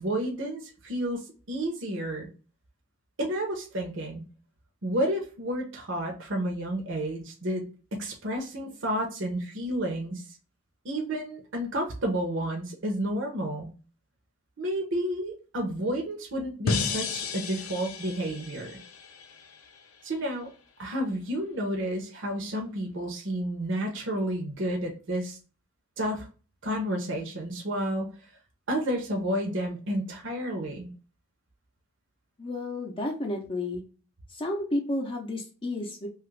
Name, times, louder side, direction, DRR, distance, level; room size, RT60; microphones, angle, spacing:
voice 1, 0.0-2.3 3.2-4.2 4.8-7.6 7.9-10.2 10.8-13.7 14.6-18.7 20.0-20.5 20.8-25.4 26.0-26.3 26.6-28.1 28.7-30.9, right 1 dB, 55° right, 1 dB, 0.7 m, -31 dB
sound 1, 16.7-19.8, left 4 dB, 80° left, 0.5 m, -33 dB
voice 2, 32.4-33.8 34.3-36.1, left 1 dB, 25° left, 1 dB, 0.5 m, -31 dB
2.9 x 2.4 x 3.1 m, 0.36 s
head